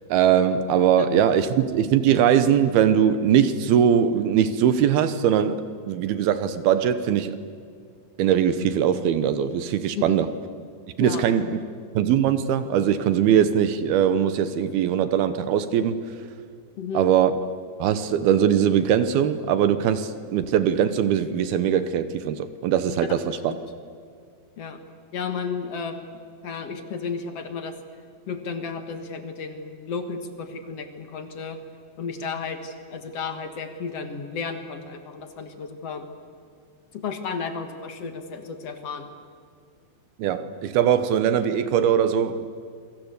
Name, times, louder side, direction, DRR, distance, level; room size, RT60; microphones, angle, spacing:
voice 1, 0.1-7.4 8.2-10.3 11.0-11.6 11.9-16.0 16.9-17.5 17.8-23.5 40.2-42.5, right 9 dB, 75° right, 12 dB, 2.4 m, -21 dB
voice 2, 16.8-17.1 23.5-23.6 24.6-24.8 25.1-26.0 26.4-27.7 28.3-31.6 32.0-36.1 36.9-39.1, left 5 dB, 60° left, 7 dB, 1.6 m, -33 dB
27.5 x 24.0 x 8.2 m, 2.2 s
omnidirectional pair, 5.3 m